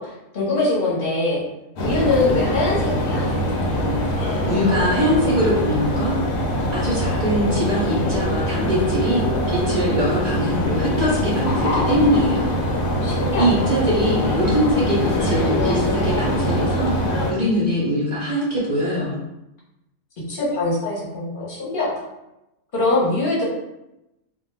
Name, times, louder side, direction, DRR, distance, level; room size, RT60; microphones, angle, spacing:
voice 1, 0.0-1.4 1.8-3.3 12.8-13.7 20.3-21.9 22.7-23.4, left 2 dB, 45° left, -6 dB, 0.9 m, -23 dB
sound 1, 1.8-17.3, equal, 75° left, 1.0 m, -23 dB
voice 2, 4.5-6.2 6.7-12.6 13.3-16.9 17.3-19.1, equal, 40° right, -7 dB, 0.6 m, -22 dB
2.4 x 2.1 x 3.1 m, 0.91 s
omnidirectional pair, 1.4 m